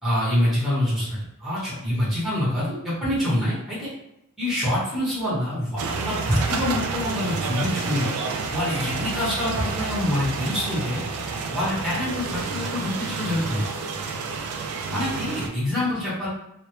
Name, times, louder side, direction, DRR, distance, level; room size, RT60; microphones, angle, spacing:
voice 1, 0.0-1.1 1.4-3.9 4.4-8.1 8.5-11.0 11.5-13.7 14.9-16.3, left 1 dB, ahead, -10 dB, 0.8 m, -25 dB
sound 1, 5.8-15.5, right 4 dB, 85° right, 0.3 m, -29 dB
2.1 x 2.0 x 2.9 m, 0.82 s
head